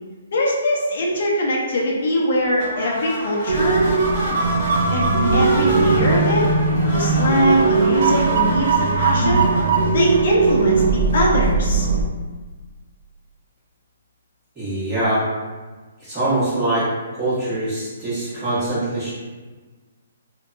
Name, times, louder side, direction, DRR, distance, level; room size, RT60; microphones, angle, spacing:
voice 1, 0.3-3.9 4.9-6.5 6.9-9.5 9.9-11.9, equal, 50° left, -3 dB, 0.5 m, -21 dB
sound 1, 2.6-11.0, equal, 15° left, 1.3 m, -29 dB
sound 2, 3.5-12.0, right 4 dB, 55° right, 0.3 m, -19 dB
voice 2, 14.5-15.2 16.0-16.9 17.2-19.1, right 1 dB, 10° right, -14 dB, 1.3 m, -23 dB
2.6 x 2.2 x 2.5 m, 1.3 s
hypercardioid pair, 170°, 0 cm